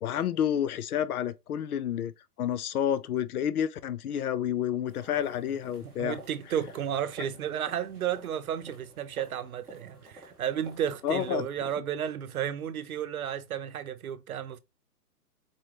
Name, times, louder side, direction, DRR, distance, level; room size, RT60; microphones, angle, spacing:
voice 1, 0.0-2.1 2.4-6.2 11.0-11.5, left 9 dB, 65° left, 0.6 m, -29 dB
sound 1, 4.9-11.7, right 1 dB, ahead, 0.5 m, -51 dB
voice 2, 5.8-14.6, right 9 dB, 60° right, 0.8 m, -33 dB
4.6 x 3.0 x 3.3 m
hypercardioid pair, 165°, 48 cm